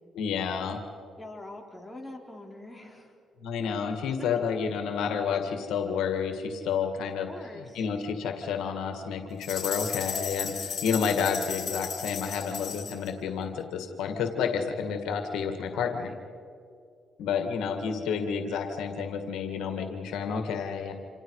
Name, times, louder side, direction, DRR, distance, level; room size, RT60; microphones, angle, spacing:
voice 1, 0.2-0.8 3.4-7.3 7.7-16.1 17.2-20.9, left 6 dB, 85° left, 5 dB, 2.0 m, -30 dB
voice 2, 1.2-3.1 7.0-7.9 15.7-16.2, left 1 dB, 5° left, 0 dB, 4.1 m, -44 dB
sound 1, 9.4-13.1, left 7 dB, 50° left, 5.4 m, -35 dB
28.0 x 27.5 x 4.9 m, 2.4 s
cardioid pair, 90°, 0 cm